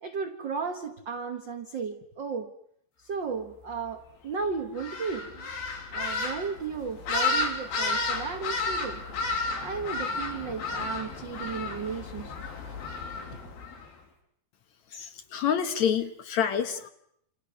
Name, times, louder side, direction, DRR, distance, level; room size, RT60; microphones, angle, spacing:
voice 1, 0.0-2.5 3.0-5.5 5.9-9.0 9.6-12.4, right 5 dB, 65° right, 6 dB, 1.1 m, -34 dB
sound 1, 4.8-13.9, left 3 dB, 90° left, 5.4 m, -32 dB
voice 2, 14.9-16.9, left 8 dB, 60° left, 8 dB, 2.3 m, -28 dB
28.5 x 28.5 x 6.2 m, 0.71 s
omnidirectional pair, 4.2 m